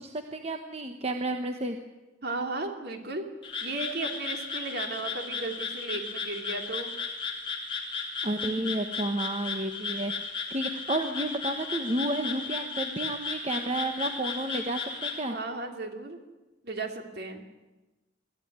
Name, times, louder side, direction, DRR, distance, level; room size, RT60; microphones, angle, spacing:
voice 1, 0.0-1.8 8.2-10.1 10.5-15.4, right 1 dB, 35° right, 6 dB, 1.2 m, -31 dB
voice 2, 2.2-3.3 3.6-6.9 15.3-16.2 16.6-17.4, right 2 dB, 55° right, 4 dB, 3.0 m, -35 dB
Frog, 3.4-15.2, left 4 dB, 25° left, 3.5 m, -35 dB
23.0 x 14.5 x 9.5 m, 1.1 s
head